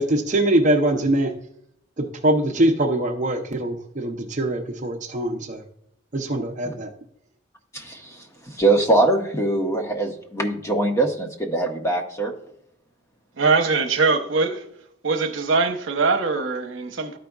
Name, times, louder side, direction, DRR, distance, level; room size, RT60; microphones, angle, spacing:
voice 1, 0.0-1.3 2.0-5.6 6.1-6.9, right 1 dB, 40° right, 0.7 m, -22 dB
voice 2, 7.7-8.2 8.5-12.3, right 2 dB, 15° left, 1.1 m, -22 dB
voice 3, 13.4-14.6 15.0-17.2, right 4 dB, 70° right, 1.0 m, -22 dB
13.0 x 5.0 x 2.3 m
head